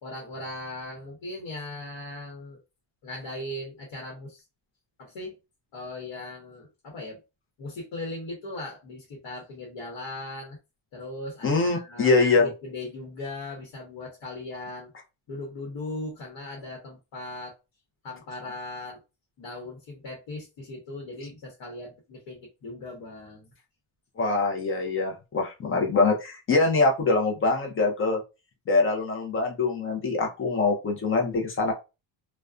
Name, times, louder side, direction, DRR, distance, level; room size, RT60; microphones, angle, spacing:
voice 1, 0.0-2.6 3.0-4.4 5.0-5.4 5.7-7.2 7.6-10.6 10.9-14.9 15.3-17.5 18.0-19.0 19.4-23.5, left 2 dB, 70° left, -1 dB, 1.0 m, -38 dB
voice 2, 11.4-12.5 24.2-28.2 28.7-31.7, left 3 dB, 30° left, 1 dB, 0.5 m, -24 dB
2.4 x 2.1 x 2.3 m, 0.27 s
cardioid pair, 165°, 46 cm